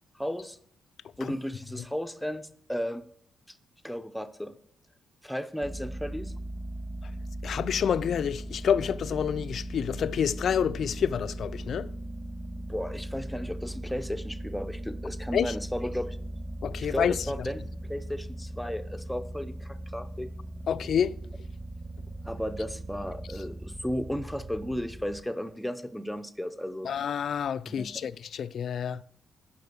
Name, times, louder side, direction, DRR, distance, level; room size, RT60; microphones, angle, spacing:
voice 1, 0.1-0.6 1.2-3.0 3.5-3.6 3.8-4.6 5.2-6.3 12.7-16.2 16.8-20.3 22.2-26.9 27.7-28.0, equal, 5° left, 0.7 m, -34 dB
sound 1, 5.6-25.2, right 1 dB, 20° right, 1.7 m, -39 dB
voice 2, 7.4-11.9 15.3-15.5 16.6-17.2 20.7-21.2 26.8-29.0, left 8 dB, 60° left, 0.4 m, -28 dB
10.5 x 5.2 x 6.8 m
cardioid pair, 105°, 0 cm